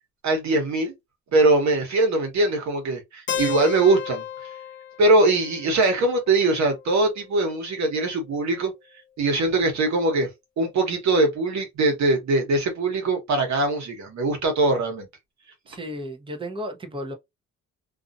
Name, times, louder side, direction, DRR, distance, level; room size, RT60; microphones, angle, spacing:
voice 1, 0.2-0.9 1.3-4.2 5.0-8.7 9.2-10.3 10.6-15.1, right 2 dB, 65° right, 1.3 m, -21 dB
Keyboard (musical), 3.3-7.2, left 9 dB, 40° left, 0.6 m, -34 dB
voice 2, 15.7-17.1, equal, 15° right, 0.8 m, -33 dB
2.6 x 2.4 x 2.6 m
cardioid pair, 90°, 30 cm